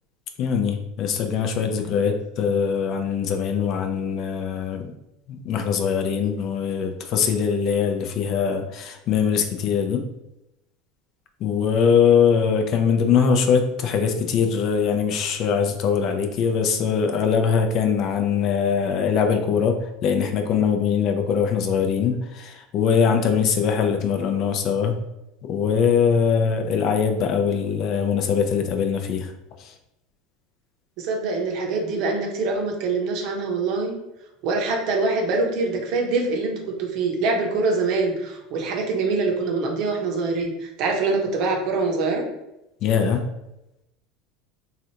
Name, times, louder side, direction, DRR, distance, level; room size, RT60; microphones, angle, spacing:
voice 1, 0.4-4.9 5.3-10.0 11.4-24.9 25.5-29.3 29.6-29.7 42.8-43.2, left 6 dB, 50° left, 5 dB, 0.4 m, -22 dB
voice 2, 31.0-33.9 34.4-42.3, right 3 dB, 60° right, 1 dB, 0.7 m, -24 dB
3.2 x 2.4 x 2.8 m, 0.90 s
hypercardioid pair, 95°, 0 cm